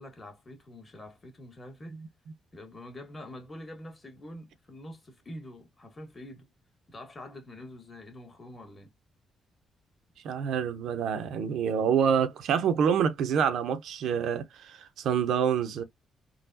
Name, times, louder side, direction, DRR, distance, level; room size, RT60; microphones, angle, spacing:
voice 1, 0.0-2.0 2.5-6.5 6.9-8.9, left 1 dB, 25° left, 1.6 m, -45 dB
voice 2, 10.2-15.8, right 7 dB, 75° right, 0.7 m, -27 dB
3.8 x 2.2 x 2.7 m
cardioid pair, 90°, 0 cm